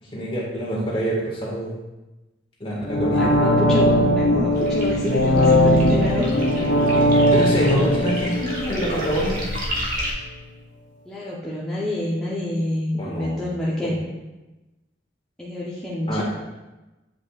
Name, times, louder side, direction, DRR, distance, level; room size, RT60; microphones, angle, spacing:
voice 1, 0.0-1.7 2.6-3.3 7.3-9.4 13.0-13.4 13.8-13.9 16.1-16.2, right 1 dB, 30° left, -5 dB, 1.7 m, -25 dB
sound 1, 2.8-9.7 10.0-10.1, equal, 75° left, 0.7 m, -19 dB
voice 2, 2.8-6.7 7.5-8.2 11.1-14.0 15.4-16.2, left 1 dB, 5° left, -8 dB, 0.7 m, -28 dB
sound 2, 4.5-10.1, equal, 45° right, 1.3 m, -32 dB
8.4 x 5.2 x 2.4 m, 1.1 s
head